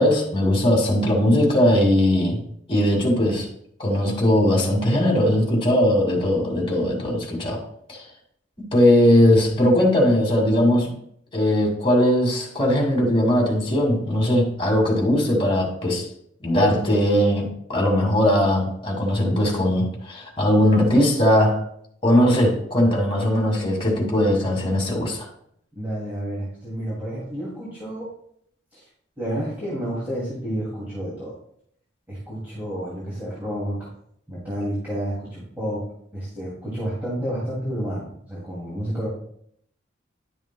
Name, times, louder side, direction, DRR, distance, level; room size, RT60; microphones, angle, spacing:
voice 1, 0.0-2.4 2.7-3.5 3.8-7.6 7.9-8.0 8.7-11.0 11.3-16.1 16.4-21.6 22.0-25.3, left 1 dB, 30° left, -1 dB, 2.3 m, -19 dB
voice 2, 25.8-28.1 28.7-28.8 29.2-31.3 32.1-33.9 34.3-35.8 36.1-39.1, equal, 10° right, -8 dB, 2.6 m, -30 dB
11.0 x 7.1 x 2.3 m, 0.69 s
head